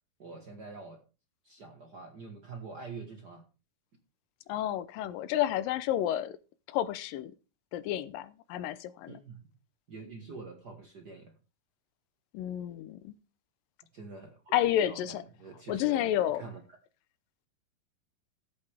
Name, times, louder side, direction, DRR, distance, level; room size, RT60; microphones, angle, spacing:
voice 1, 0.2-1.0 1.4-3.4 9.1-9.5 9.9-11.4 13.9-16.6, right 4 dB, 65° right, 1.0 m, -46 dB
voice 2, 4.5-6.4 6.7-7.3 7.7-9.2 12.3-13.1 14.5-15.2 15.7-16.4, left 12 dB, 80° left, 2.3 m, -30 dB
15.0 x 8.4 x 3.4 m
omnidirectional pair, 4.1 m